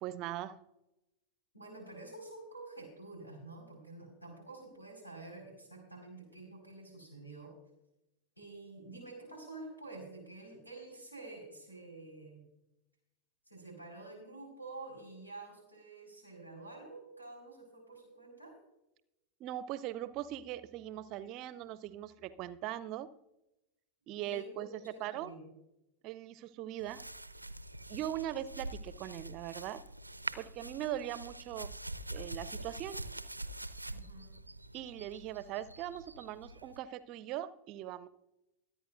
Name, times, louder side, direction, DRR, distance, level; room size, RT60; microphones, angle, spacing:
voice 1, 0.0-0.6 19.4-23.1 24.1-24.7 25.0-25.3 26.0-27.0 27.9-29.8 30.4-31.7 32.1-33.0 34.7-38.1, right 12 dB, 40° right, 17 dB, 0.6 m, -40 dB
voice 2, 1.5-7.5 8.4-12.5 13.5-18.5 24.2-25.5 33.9-34.3, right 2 dB, 90° left, 2 dB, 5.0 m, -49 dB
sound 1, 26.8-36.8, right 1 dB, 85° right, 0.5 m, -45 dB
24.0 x 9.2 x 2.6 m, 0.92 s
figure-of-eight pair, 90°, 0 cm